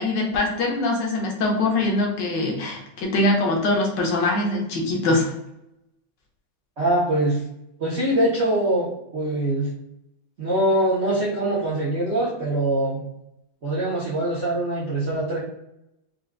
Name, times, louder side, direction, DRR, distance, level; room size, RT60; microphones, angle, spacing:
voice 1, 0.0-5.3, left 2 dB, 70° left, 0 dB, 1.4 m, -23 dB
voice 2, 6.8-7.4 7.8-9.7 10.4-13.0 13.6-15.4, right 1 dB, 60° right, -7 dB, 0.7 m, -23 dB
4.3 x 2.3 x 2.4 m, 0.85 s
omnidirectional pair, 2.1 m